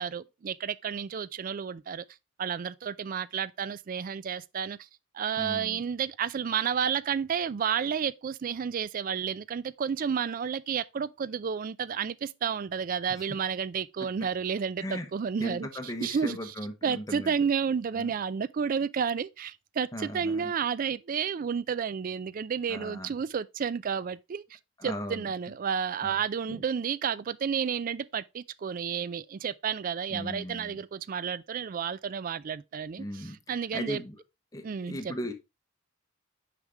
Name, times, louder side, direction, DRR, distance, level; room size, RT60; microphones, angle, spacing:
voice 1, 0.0-2.0 2.4-4.9 5.1-15.7 16.0-16.5 16.8-34.0 34.6-35.2, right 7 dB, 40° right, 0.3 m, -31 dB
voice 2, 5.4-5.8 13.1-13.2 14.8-15.1 15.4-17.3 17.9-18.1 19.9-20.5 22.7-23.1 24.8-25.3 26.0-26.2 26.5-26.6 30.1-30.8 33.0-34.2 34.5-35.3, left 1 dB, 15° left, 1.0 m, -38 dB
6.4 x 5.1 x 3.4 m
head